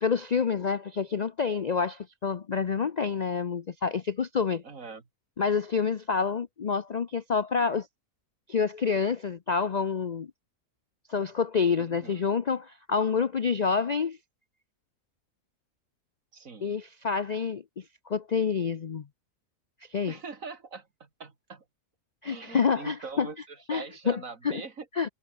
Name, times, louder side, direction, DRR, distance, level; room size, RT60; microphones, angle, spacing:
voice 1, 0.0-4.6 5.4-7.9 8.5-10.3 11.1-14.2 16.6-17.6 18.1-19.0 19.9-20.1 22.2-23.3 23.7-24.2 24.4-24.6 25.0-25.1, left 5 dB, 80° left, 0.3 m, -28 dB
voice 2, 4.6-5.0 11.8-12.3 16.3-16.8 20.1-21.6 22.2-24.9, right 4 dB, 55° right, 2.6 m, -42 dB
omnidirectional pair, 1.7 m